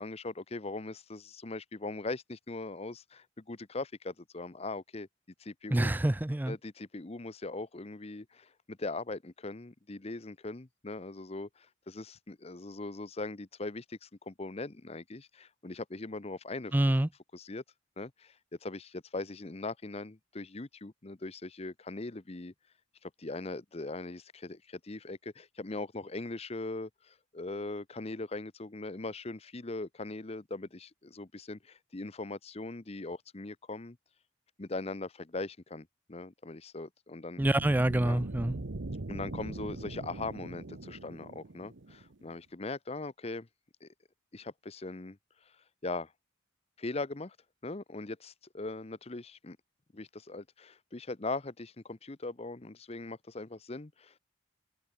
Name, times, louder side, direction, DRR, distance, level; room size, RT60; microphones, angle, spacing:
voice 1, 0.0-5.1 5.4-5.9 6.5-16.7 17.3-17.6 18.0-18.4 18.6-22.5 23.0-34.0 34.6-37.4 38.0-38.2 39.1-43.5 43.8-43.9 44.3-45.2 45.8-46.1 46.8-47.4 47.6-49.6 49.9-54.2, left 2 dB, 30° left, 0.8 m, -40 dB
voice 2, 5.7-6.6 16.7-17.1 37.4-38.6, right 1 dB, 10° right, 0.4 m, -26 dB
sound 1, 37.4-42.3, right 2 dB, 70° right, 1.0 m, -41 dB
open air
head